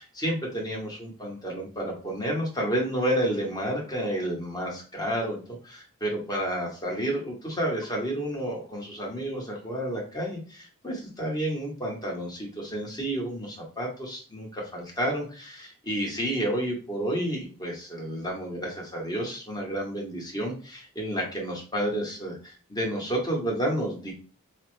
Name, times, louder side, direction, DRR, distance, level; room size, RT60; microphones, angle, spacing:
voice 1, 0.0-24.1, right 1 dB, 20° left, -1 dB, 1.1 m, -30 dB
4.8 x 2.1 x 3.2 m, 0.38 s
head